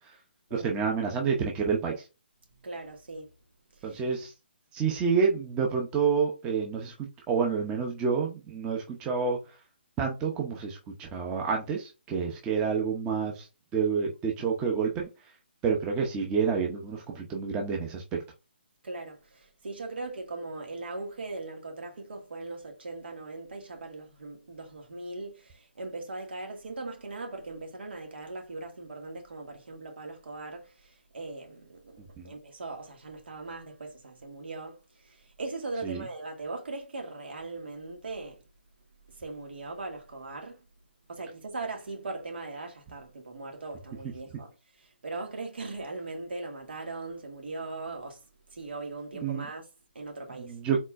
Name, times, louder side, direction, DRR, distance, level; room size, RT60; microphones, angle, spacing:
voice 1, 0.5-1.9 3.8-4.3 4.7-9.4 10.0-13.5 13.7-15.0 15.6-18.0 32.2-32.3 35.8-36.0 49.2-49.5 50.4-50.8, right 6 dB, 15° right, 0.8 m, -28 dB
voice 2, 2.6-3.3 3.8-4.0 18.8-38.4 39.1-40.7 41.1-48.2 48.5-49.7 49.9-50.5, right 3 dB, 75° right, 2.1 m, -39 dB
4.2 x 4.1 x 2.6 m
hypercardioid pair, 155°, 6 cm